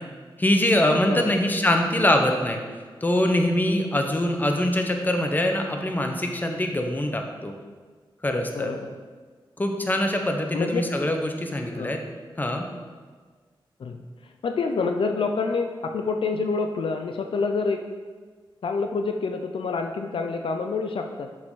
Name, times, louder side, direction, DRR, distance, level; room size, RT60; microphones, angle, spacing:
voice 1, 0.4-2.6 3.0-7.5 8.2-8.7 9.6-12.0 12.4-12.6, left 1 dB, 20° left, 3 dB, 0.8 m, -23 dB
voice 2, 8.5-9.0 10.5-10.8 11.7-12.0 13.8-14.0 14.4-17.8 18.6-21.3, left 4 dB, 75° left, 5 dB, 0.5 m, -27 dB
7.4 x 5.1 x 3.8 m, 1.5 s
wide cardioid pair, 80°, 9 cm